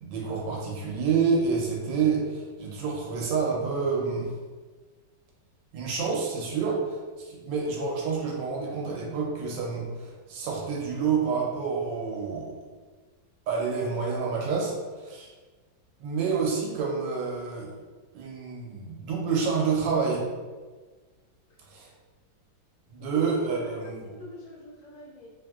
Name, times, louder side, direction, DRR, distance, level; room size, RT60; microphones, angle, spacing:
voice 1, 0.0-4.3 5.7-12.5 13.5-15.3 16.0-17.8 18.1-20.2 21.7-21.9 22.9-24.0, right 5 dB, 90° right, -2 dB, 1.3 m, -28 dB
voice 2, 23.5-25.3, left 1 dB, 70° left, -6 dB, 1.0 m, -44 dB
3.1 x 2.7 x 2.3 m, 1.4 s
omnidirectional pair, 1.9 m